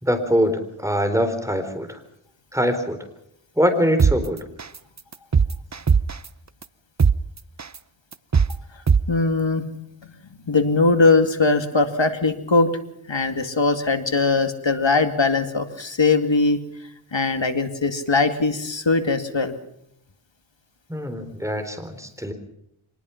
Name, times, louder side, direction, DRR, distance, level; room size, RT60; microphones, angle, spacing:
voice 1, 0.0-2.0 2.5-3.0 3.6-4.4 20.9-22.3, equal, 5° right, 7 dB, 3.9 m, -23 dB
sound 1, 4.0-4.2 4.6-4.8 5.1-6.3 6.6-6.7 7.0-7.2 7.6-7.8 8.1-8.5 8.9-9.0, right 6 dB, 35° right, 0.7 m, -17 dB
voice 2, 9.1-9.6 10.5-12.7 13.1-16.6 17.1-19.5, left 3 dB, 60° left, 8 dB, 2.3 m, -20 dB
25.0 x 20.0 x 5.8 m, 0.76 s
wide cardioid pair, 45°, 50 cm